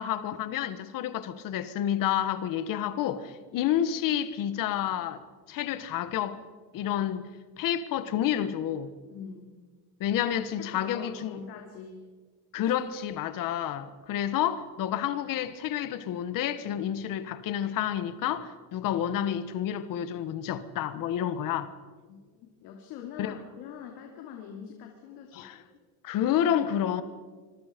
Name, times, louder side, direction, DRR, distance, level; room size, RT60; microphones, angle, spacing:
voice 1, 0.0-5.2 5.5-6.4 6.7-7.3 7.6-8.9 10.0-11.4 12.5-21.7 23.2-23.3 25.3-25.6 26.0-27.0, left 10 dB, 55° left, 1.4 m, -29 dB
voice 2, 9.1-9.5 10.6-12.0 12.6-12.7 13.2-13.4 22.1-25.7, left 7 dB, 90° left, 3.0 m, -44 dB
26.5 x 22.0 x 5.2 m
cardioid pair, 165°, 39 cm